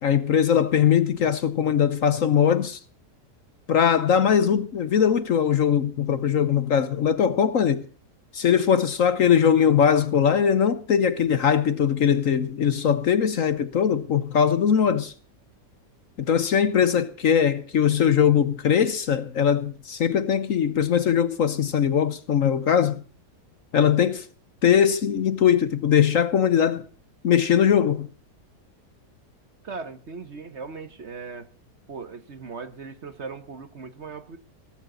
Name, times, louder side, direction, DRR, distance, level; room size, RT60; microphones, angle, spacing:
voice 1, 0.0-2.8 3.7-7.9 8.3-15.1 16.2-23.0 23.7-24.3 24.6-26.8 27.2-28.1, left 8 dB, 55° left, 1.1 m, -21 dB
voice 2, 29.6-31.5 31.9-34.4, right 4 dB, 45° right, 1.2 m, -38 dB
17.5 x 15.0 x 3.8 m
omnidirectional pair, 1.8 m